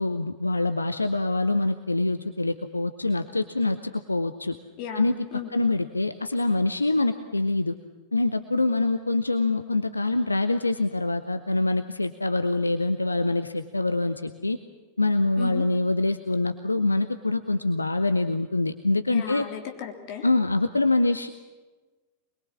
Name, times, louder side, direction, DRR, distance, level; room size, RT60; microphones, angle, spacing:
voice 1, 0.0-4.6 4.9-5.1 5.5-7.7 8.1-14.6 15.0-19.4 20.2-21.3, left 2 dB, 80° left, 10 dB, 0.9 m, -25 dB
voice 2, 4.8-5.5 15.4-15.6 19.1-20.3, left 9 dB, 45° left, 4 dB, 3.6 m, -35 dB
24.5 x 22.0 x 7.4 m, 1.2 s
figure-of-eight pair, 90°, 0 cm